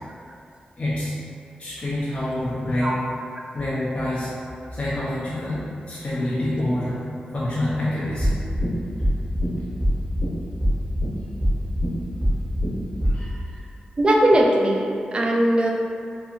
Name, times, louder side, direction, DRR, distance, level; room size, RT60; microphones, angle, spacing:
voice 1, 0.8-1.1 1.6-3.0 3.5-4.3 4.7-8.3 13.0-13.6, left 1 dB, 40° left, -9 dB, 0.5 m, -27 dB
sound 1, 8.2-8.7 9.0-9.5 9.8-10.3 10.6-11.1 11.4-11.9 12.2-12.7 13.0-13.1, equal, 5° right, 0.8 m, -21 dB
voice 2, 14.0-15.7, right 1 dB, 35° right, -1 dB, 0.3 m, -19 dB
2.6 x 2.6 x 2.4 m, 2.4 s
wide cardioid pair, 85°, 3 cm